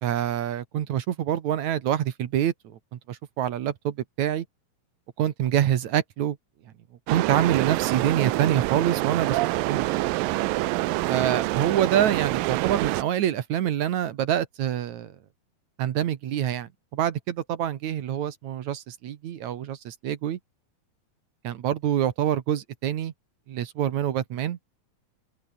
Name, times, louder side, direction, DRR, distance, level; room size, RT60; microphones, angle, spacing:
voice 1, 0.0-4.5 5.2-6.4 7.1-9.4 9.7-10.0 11.1-15.2 15.8-20.4 21.4-23.1 23.5-24.6, right 10 dB, 60° right, 2.4 m, -26 dB
sound 1, 7.1-13.0, right 19 dB, 80° right, 2.3 m, -26 dB
open air
omnidirectional pair, 4.2 m